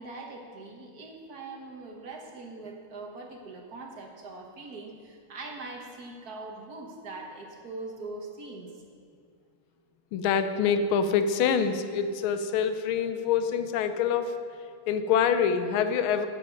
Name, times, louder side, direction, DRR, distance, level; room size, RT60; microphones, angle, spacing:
voice 1, 0.0-8.7, right 3 dB, 50° right, 1 dB, 1.5 m, -42 dB
voice 2, 10.1-14.3 14.9-16.3, left 7 dB, 80° left, 9 dB, 1.5 m, -25 dB
12.5 x 8.2 x 5.1 m, 2.2 s
omnidirectional pair, 2.4 m